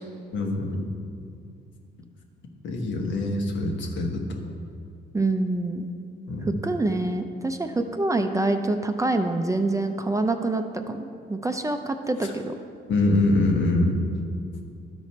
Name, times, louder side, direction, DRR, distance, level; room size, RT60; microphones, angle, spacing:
voice 1, 0.3-0.9 2.6-4.3 6.3-6.5 12.2-12.3 12.9-14.0, left 2 dB, 70° left, 2 dB, 1.3 m, -24 dB
voice 2, 5.1-5.9 6.4-12.5, right 2 dB, 15° right, 6 dB, 0.5 m, -26 dB
12.0 x 5.0 x 4.2 m, 2.4 s
cardioid pair, 90°, 20 cm